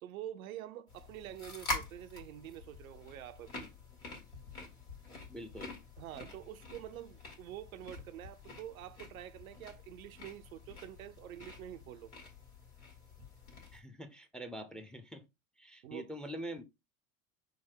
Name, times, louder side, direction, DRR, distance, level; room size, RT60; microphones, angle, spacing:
voice 1, 0.0-3.6 6.0-12.1 15.8-16.1, right 12 dB, 70° right, 0.6 m, -47 dB
I eat a carrot, 0.9-13.8, left 3 dB, 85° left, 1.7 m, -46 dB
voice 2, 5.3-5.7 13.7-15.2 15.6-16.6, equal, ahead, 0.5 m, -44 dB
5.8 x 2.1 x 4.3 m
figure-of-eight pair, 75°, 43 cm